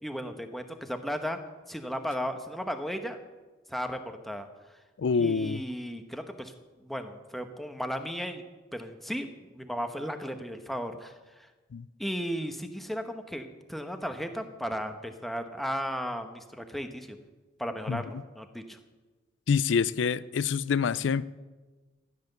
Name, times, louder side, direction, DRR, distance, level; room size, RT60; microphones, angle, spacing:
voice 1, 0.0-1.4 1.7-3.2 3.7-4.5 5.2-6.5 6.8-8.4 8.7-11.5 12.0-17.2 17.6-18.8, equal, ahead, 1.0 m, -35 dB
voice 2, 5.0-5.6 11.7-11.9 17.9-18.0 19.5-21.2, left 6 dB, 75° left, 0.4 m, -26 dB
15.0 x 10.5 x 6.7 m
head